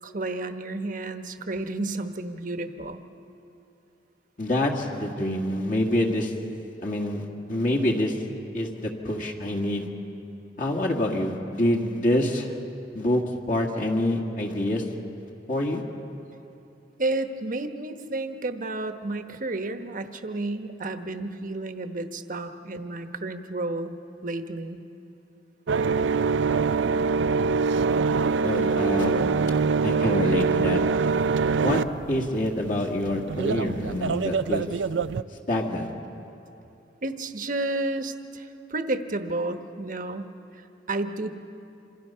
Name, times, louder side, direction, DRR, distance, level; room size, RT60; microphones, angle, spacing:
voice 1, 0.0-3.0 17.0-23.9 24.2-24.8 37.0-41.3, right 2 dB, 45° right, 7 dB, 1.2 m, -31 dB
voice 2, 4.4-6.3 6.8-8.2 8.5-9.9 10.6-12.6 12.9-13.2 13.5-14.9 15.5-15.8 28.4-29.3 29.8-30.8 31.6-31.8 32.1-34.7 35.3-35.9, left 1 dB, 45° left, 0 dB, 2.0 m, -26 dB
sound 1, 25.7-35.2, right 5 dB, 80° right, 0.4 m, -24 dB
27.0 x 27.0 x 5.7 m, 2.8 s
head